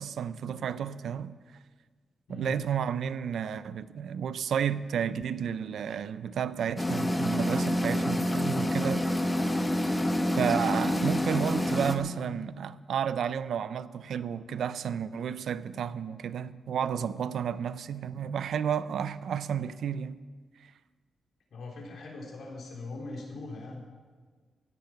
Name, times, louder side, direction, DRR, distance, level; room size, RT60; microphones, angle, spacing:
voice 1, 0.0-1.4 2.3-9.2 10.4-20.2, right 8 dB, 80° right, 0.5 m, -32 dB
sound 1, 6.8-12.0, left 1 dB, 15° left, 1.1 m, -27 dB
voice 2, 21.5-23.8, left 3 dB, 70° left, 3.4 m, -41 dB
16.5 x 10.5 x 5.8 m
wide cardioid pair, 135°, 0 cm